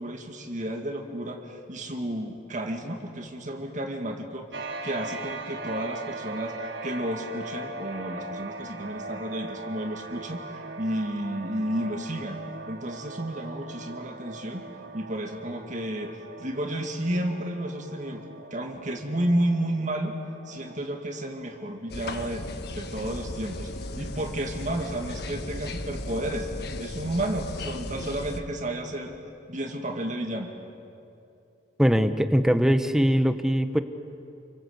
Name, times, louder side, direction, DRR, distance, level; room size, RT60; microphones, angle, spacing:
voice 1, 0.0-6.6 6.8-12.4 12.7-14.6 14.9-18.2 18.5-20.2 20.5-23.7 24.0-26.5 26.8-29.2 29.5-30.5, right 1 dB, 45° right, 3 dB, 2.3 m, -32 dB
sound 1, 4.5-21.8, right 2 dB, 80° right, 1.7 m, -40 dB
sound 2, 21.9-28.4, left 2 dB, 65° left, 1.5 m, -36 dB
voice 2, 31.8-33.8, equal, 5° right, 9 dB, 1.1 m, -21 dB
29.5 x 24.5 x 8.1 m, 2.6 s
head